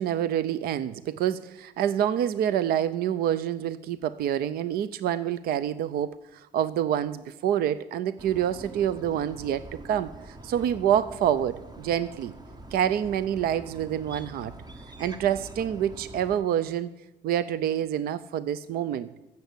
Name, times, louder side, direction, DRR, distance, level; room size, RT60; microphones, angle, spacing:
voice 1, 0.0-12.3 12.7-14.5 15.0-16.9 17.2-19.1, right 10 dB, 65° right, 16 dB, 0.5 m, -27 dB
sound 1, 8.2-16.4, right 2 dB, 25° right, 1.1 m, -45 dB
14.5 x 7.0 x 8.1 m, 1.0 s
cardioid pair, 110°, 17 cm